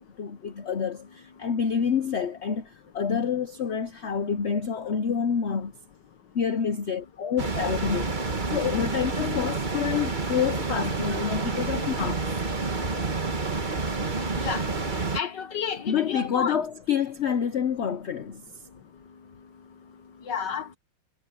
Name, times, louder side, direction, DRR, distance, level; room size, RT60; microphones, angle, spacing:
voice 1, 0.2-5.7 6.3-8.1 8.5-12.3 14.9-15.0 15.8-18.4, left 7 dB, 50° left, 0.8 m, -28 dB
sound 1, 7.4-15.2, right 3 dB, 25° right, 1.6 m, -29 dB
voice 2, 15.1-16.6 20.3-20.8, left 7 dB, 70° left, 1.8 m, -30 dB
omnidirectional pair, 2.0 m